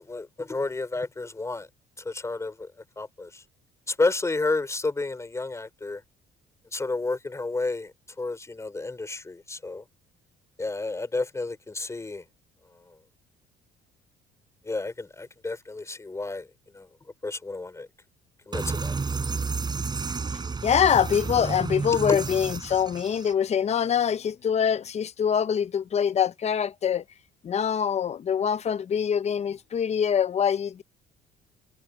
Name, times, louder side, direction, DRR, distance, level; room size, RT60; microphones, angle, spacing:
voice 1, 0.0-1.7 2.0-3.4 3.9-6.0 6.7-9.8 10.6-12.2 14.6-16.5 16.7-16.9 17.2-17.9 18.5-19.0 22.1-22.2, left 3 dB, 15° left, 4.2 m, -31 dB
sound 1, 18.5-23.3, right 4 dB, 25° right, 6.8 m, -31 dB
voice 2, 20.6-27.0 27.4-30.8, left 8 dB, 40° left, 0.8 m, -24 dB
cardioid pair, 110°, 17 cm